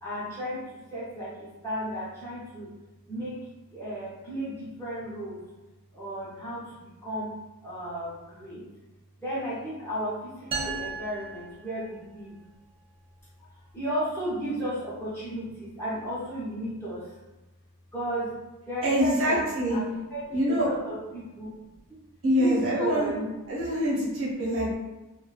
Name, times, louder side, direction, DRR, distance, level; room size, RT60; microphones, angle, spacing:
voice 1, 0.0-2.7 3.1-3.4 3.7-5.4 5.9-7.3 7.6-8.6 9.2-12.4 13.7-17.1 17.9-18.3 18.7-19.4 19.7-19.8 20.1-21.7 22.4-23.3, equal, 10° left, -10 dB, 0.9 m, -34 dB
sound 1, 10.5-12.3, right 4 dB, 25° right, 0.4 m, -36 dB
voice 2, 18.8-19.8 20.3-20.7 22.2-23.1 23.5-24.7, equal, 65° right, -7 dB, 1.0 m, -25 dB
2.5 x 2.2 x 2.4 m, 1.1 s
head